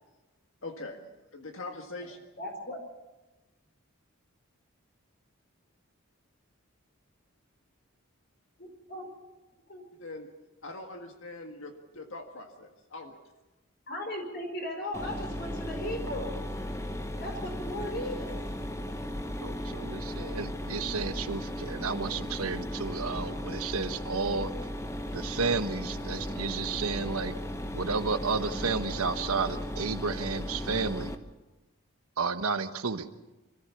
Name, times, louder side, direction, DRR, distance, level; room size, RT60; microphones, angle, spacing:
voice 1, 0.6-2.2 10.0-10.3 10.6-13.1, left 2 dB, 65° left, 4 dB, 1.7 m, -42 dB
voice 2, 2.4-2.8 8.6-9.1 9.7-9.8 13.9-16.4 17.2-18.4, left 1 dB, 50° left, 3 dB, 5.2 m, -37 dB
Mechanisms, 14.9-31.1, equal, 15° left, 1.0 m, -36 dB
voice 3, 19.4-24.5 25.1-27.4 27.7-31.1 32.2-33.1, right 4 dB, 90° right, 9 dB, 1.2 m, -32 dB
26.0 x 14.5 x 7.2 m, 1.1 s
head